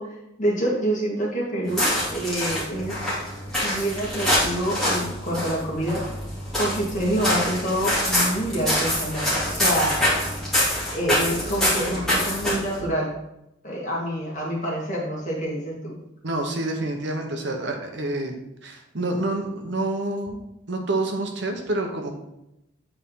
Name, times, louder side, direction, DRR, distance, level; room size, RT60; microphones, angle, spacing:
voice 1, 0.0-3.0 3.6-6.0 6.6-9.9 10.7-13.1 13.6-16.0, right 1 dB, 40° left, -4 dB, 1.9 m, -27 dB
sound 1, 1.6-12.8, left 1 dB, ahead, 2.4 m, -25 dB
voice 2, 16.2-18.3 18.6-20.4 20.7-22.1, right 2 dB, 60° right, 3 dB, 1.0 m, -27 dB
8.2 x 4.1 x 3.8 m, 0.86 s
head